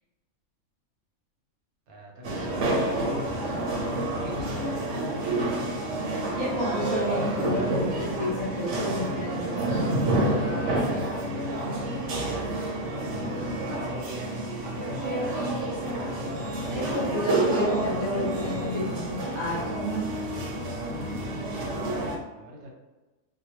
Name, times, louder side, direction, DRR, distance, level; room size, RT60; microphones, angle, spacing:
voice 1, 1.9-2.8 3.5-3.7 4.1-4.8 10.6-12.7 13.6-13.9 14.9-15.7 21.3-22.7, right 1 dB, 90° right, -1 dB, 1.2 m, -47 dB
sound 1, 2.2-22.2, right 1 dB, 65° right, 0.9 m, -29 dB
voice 2, 6.4-9.9 16.7-20.1, equal, 35° left, -7 dB, 0.5 m, -30 dB
2.6 x 2.2 x 2.9 m, 1.1 s
omnidirectional pair, 1.5 m